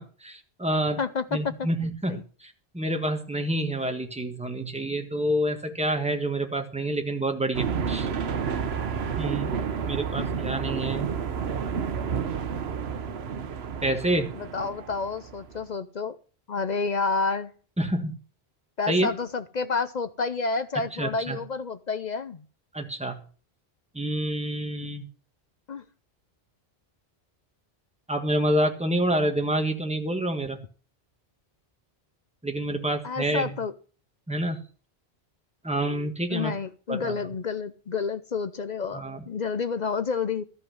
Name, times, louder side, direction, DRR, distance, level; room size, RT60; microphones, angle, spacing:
voice 1, 0.0-1.0 1.3-8.1 9.2-9.6 9.9-11.1 13.8-14.3 17.8-18.1 18.9-19.1 21.0-21.4 22.7-23.2 23.9-25.1 28.1-30.6 32.4-33.6 34.3-34.6 35.6-36.5 36.9-37.2 38.9-39.2, right 1 dB, 5° right, 4 dB, 1.4 m, -28 dB
voice 2, 1.0-1.5 1.8-2.2 14.3-16.2 16.5-17.5 18.8-22.4 25.7-25.8 33.0-33.8 36.3-40.4, left 4 dB, 45° left, 11 dB, 0.7 m, -29 dB
sound 1, 7.5-15.6, right 6 dB, 75° right, 1.1 m, -30 dB
13.5 x 5.7 x 7.7 m, 0.40 s
omnidirectional pair, 1.1 m